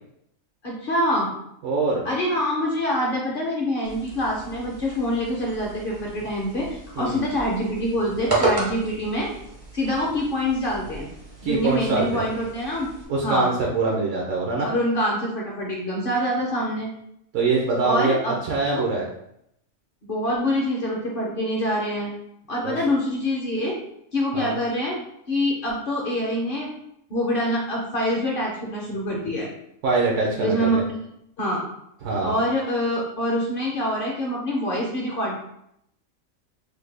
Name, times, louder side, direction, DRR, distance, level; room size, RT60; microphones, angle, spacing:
voice 1, 0.6-1.3 2.0-6.7 7.0-9.3 9.7-11.1 11.4-12.9 13.2-13.5 14.6-16.9 17.8-18.4 18.7-18.9 20.0-22.1 22.5-23.8 24.1-25.0 25.3-26.7 27.1-29.5 30.4-31.0 31.4-31.6 32.2-35.3, equal, 55° left, -2 dB, 0.6 m, -25 dB
voice 2, 1.6-2.0 7.0-7.2 11.4-12.3 13.1-14.7 17.3-19.1 22.6-22.8 24.3-24.5 29.8-30.8 32.0-32.3, right 3 dB, 70° right, -2 dB, 0.9 m, -23 dB
sound 1, 3.8-13.0, right 3 dB, 30° right, 0.5 m, -33 dB
3.4 x 2.1 x 3.2 m, 0.76 s
omnidirectional pair, 1.4 m